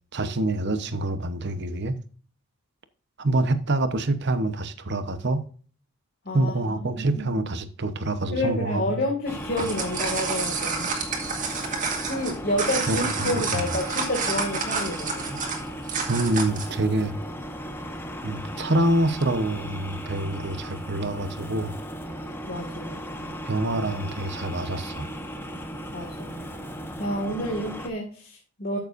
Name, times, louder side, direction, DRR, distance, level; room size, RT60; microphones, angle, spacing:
voice 1, 0.1-2.0 3.2-5.4 6.3-9.0 12.9-13.7 16.1-17.1 18.2-21.7 23.4-25.1, right 2 dB, 50° right, 1.0 m, -26 dB
voice 2, 8.3-10.9 12.1-15.4 22.5-23.3 25.9-26.4 27.0-28.8, left 1 dB, 45° left, 2.1 m, -29 dB
sound 1, 9.3-27.9, equal, 10° left, 1.1 m, -36 dB
sound 2, 9.4-16.7, right 4 dB, 35° right, 2.1 m, -29 dB
13.5 x 7.1 x 2.6 m
head